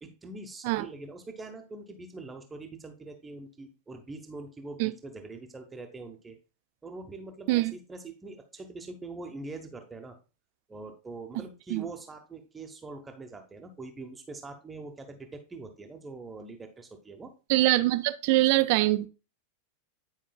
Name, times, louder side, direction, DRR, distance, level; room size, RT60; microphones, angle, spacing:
voice 1, 0.0-6.4 6.8-10.2 10.7-17.3, right 3 dB, 15° right, 0.8 m, -43 dB
voice 2, 17.5-19.1, right 17 dB, 45° right, 0.5 m, -23 dB
10.0 x 4.7 x 2.2 m
figure-of-eight pair, 90°, 0 cm